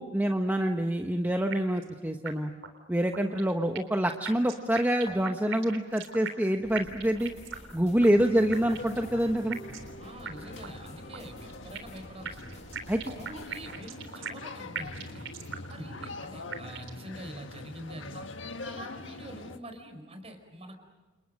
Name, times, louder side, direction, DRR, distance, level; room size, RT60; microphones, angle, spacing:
voice 1, 0.0-2.5 2.9-7.3 7.7-9.6 12.9-13.0, equal, 10° right, 4 dB, 1.2 m, -26 dB
sound 1, 1.5-1.9 2.3-2.4 2.6-2.7 3.1-4.0 4.3-6.5 6.8-7.7 8.0-8.1 8.5-9.0 9.5-9.9 10.3-10.4 10.6-10.7 11.1-12.0 12.3-14.5 14.8-15.7 16.0-16.1 16.5-17.0, right 7 dB, 80° right, 3.6 m, -39 dB
sound 2, 6.6-13.7, equal, 35° left, 7.2 m, -49 dB
voice 2, 8.0-8.5 10.0-12.6 13.2-15.3 15.7-18.3 18.6-20.8, right 1 dB, 30° right, 6 dB, 4.8 m, -45 dB
sound 3, 8.1-19.6, left 3 dB, 70° left, 1.5 m, -44 dB
30.0 x 29.5 x 6.5 m, 1.2 s
head